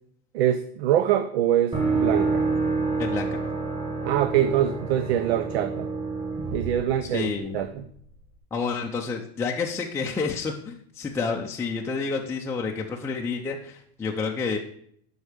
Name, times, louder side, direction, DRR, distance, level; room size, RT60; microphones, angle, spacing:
voice 1, 0.3-2.5 4.0-5.9 6.5-7.9, right 11 dB, 80° right, 10 dB, 0.6 m, -24 dB
sound 1, 1.7-7.6, right 3 dB, 20° right, 1.7 m, -28 dB
voice 2, 3.0-3.4 7.0-7.7 8.5-14.6, left 4 dB, 10° left, 0 dB, 0.5 m, -29 dB
8.1 x 5.5 x 5.0 m, 0.66 s
supercardioid pair, 130°, 31 cm